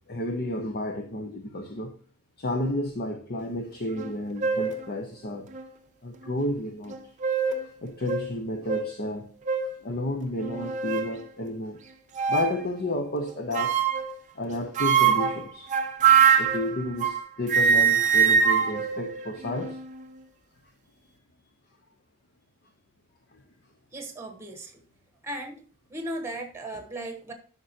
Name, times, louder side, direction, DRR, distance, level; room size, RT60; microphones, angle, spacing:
voice 1, 0.1-1.9 2.4-5.5 6.0-7.0 7.8-9.3 9.8-11.8 12.3-13.8 14.3-15.7 16.4-19.8 23.3-23.4, left 1 dB, 45° left, 0.8 m, -31 dB
sound 1, 4.0-4.1 4.4-4.8 5.5-5.6 6.9-7.7 8.1-8.2 8.7-8.9 9.5-9.7 10.4-11.1 12.1-12.6 13.5-14.1 14.8-17.2 17.5-19.8, right 7 dB, 35° right, 0.6 m, -23 dB
voice 2, 23.9-24.8 25.2-25.6 25.9-27.3, right 1 dB, 10° right, 1.2 m, -36 dB
11.0 x 5.1 x 2.8 m
head